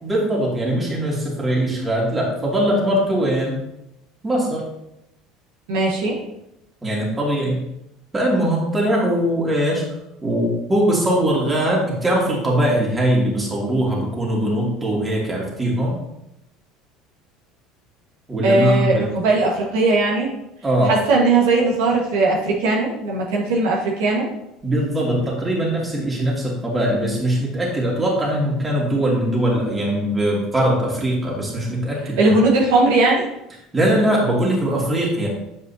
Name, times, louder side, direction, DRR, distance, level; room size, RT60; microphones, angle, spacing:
voice 1, 0.0-3.6 4.2-4.6 6.8-7.6 8.1-9.8 10.2-16.0 18.3-19.1 20.6-20.9 24.6-32.3 33.7-35.3, right 1 dB, 20° right, -3 dB, 2.5 m, -21 dB
voice 2, 5.7-6.2 18.4-20.3 20.8-24.3 32.2-33.3, right 2 dB, 85° right, -3 dB, 1.5 m, -18 dB
7.8 x 5.3 x 2.8 m, 0.83 s
supercardioid pair, 90°, 0 cm